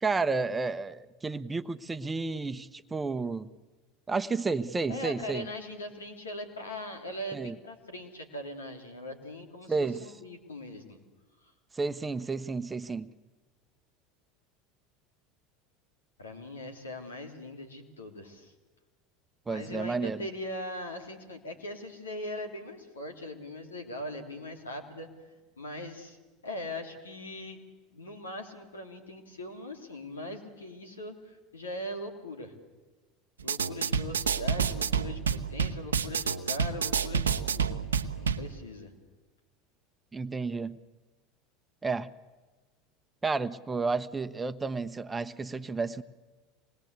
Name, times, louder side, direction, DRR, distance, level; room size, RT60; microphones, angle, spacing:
voice 1, 0.0-3.5 4.1-5.5 7.3-7.5 9.7-10.0 11.7-13.1 19.5-20.3 40.1-40.8 41.8-42.1 43.2-46.0, right 4 dB, 20° right, 12 dB, 1.0 m, -31 dB
voice 2, 4.9-11.0 11.4-11.5 16.2-18.5 19.5-26.2 26.4-27.7 27.9-32.5 33.4-37.8 38.1-38.9, left 1 dB, 90° left, 4 dB, 3.2 m, -40 dB
sound 1, 33.4-38.4, right 6 dB, 90° right, 0.9 m, -29 dB
26.0 x 20.5 x 8.2 m, 1.3 s
hypercardioid pair, 80°, 0 cm